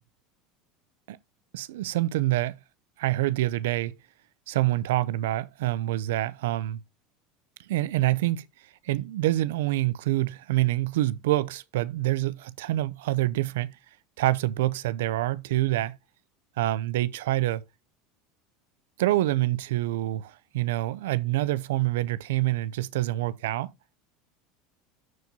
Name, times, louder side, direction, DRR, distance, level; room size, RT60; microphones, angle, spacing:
voice 1, 1.5-2.6 3.0-4.0 4.5-6.8 7.6-8.4 8.8-13.8 14.2-16.0 16.6-17.6 19.0-23.7, right 16 dB, 85° right, 0.4 m, -26 dB
12.5 x 4.4 x 2.7 m
supercardioid pair, 100°, 0 cm